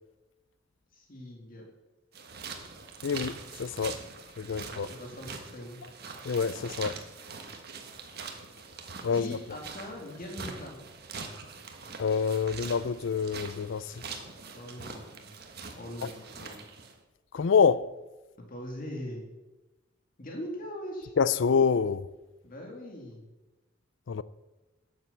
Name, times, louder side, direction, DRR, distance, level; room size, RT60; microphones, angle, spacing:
voice 1, 0.9-1.6 3.7-3.8 4.5-5.8 9.1-10.8 14.5-15.3 15.8-16.6 18.5-19.3 20.2-21.1 22.4-23.3, left 1 dB, 45° left, 2.4 m, -41 dB
sound 1, 2.1-17.0, right 4 dB, 50° right, 1.5 m, -43 dB
voice 2, 3.0-4.0 4.4-4.9 6.2-7.0 9.0-9.3 12.0-13.9 17.3-17.9 21.2-22.1 24.1-24.2, left 6 dB, 65° left, 0.4 m, -26 dB
12.0 x 7.6 x 7.1 m
head